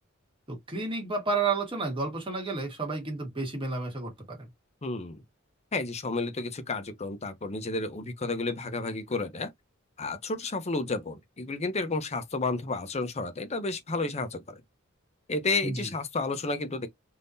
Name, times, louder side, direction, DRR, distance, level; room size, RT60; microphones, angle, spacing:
voice 1, 0.5-4.5 15.6-15.9, right 4 dB, 25° right, 1.4 m, -31 dB
voice 2, 4.8-5.2 5.7-9.5 10.0-14.6 15.3-16.9, left 3 dB, 30° left, 0.6 m, -31 dB
3.6 x 2.6 x 2.6 m
head